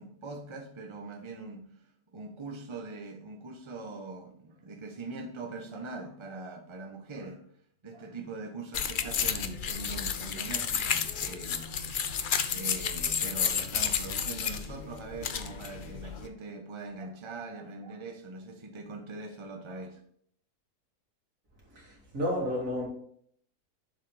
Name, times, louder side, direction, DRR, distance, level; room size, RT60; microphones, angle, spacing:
voice 1, 0.0-1.8 2.1-7.5 7.8-12.0 12.5-20.0, right 3 dB, 20° right, 0.9 m, -42 dB
sound 1, 8.7-16.3, left 7 dB, 85° left, 0.4 m, -31 dB
voice 2, 21.7-22.9, left 1 dB, 55° right, 2.9 m, -31 dB
7.4 x 5.7 x 3.4 m
omnidirectional pair, 1.7 m